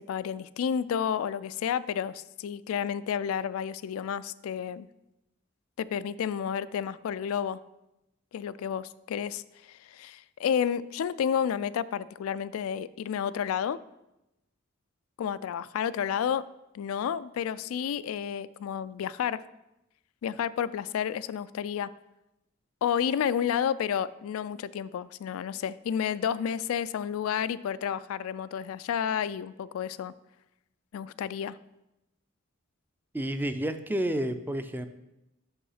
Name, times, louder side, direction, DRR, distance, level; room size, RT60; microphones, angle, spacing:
voice 1, 0.1-4.9 5.8-7.6 8.3-9.4 9.9-13.8 15.2-16.4 16.7-19.4 20.2-21.9 22.8-30.1 30.9-31.6, left 8 dB, 90° left, 16 dB, 0.3 m, -31 dB
voice 2, 33.1-34.9, right 1 dB, 10° right, 9 dB, 0.4 m, -30 dB
6.2 x 5.6 x 5.6 m, 0.91 s
head